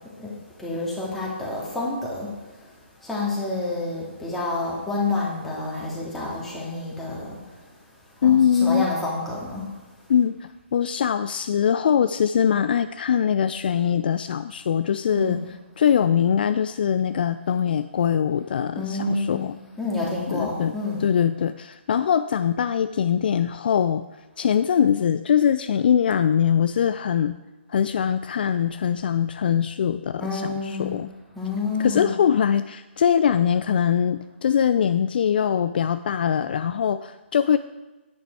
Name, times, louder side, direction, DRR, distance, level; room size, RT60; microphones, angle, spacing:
voice 1, 0.6-2.4 3.0-7.4 8.2-9.7 15.2-15.5 18.8-19.4 19.8-21.1 30.2-30.9 31.3-32.1, left 2 dB, 5° left, -6 dB, 2.9 m, -28 dB
voice 2, 8.2-8.9 10.1-15.4 15.8-19.6 20.3-24.0 24.4-27.4 27.7-31.1 31.8-37.6, left 8 dB, 50° left, 11 dB, 0.4 m, -22 dB
9.9 x 9.7 x 4.7 m, 1.1 s
figure-of-eight pair, 140°, 7 cm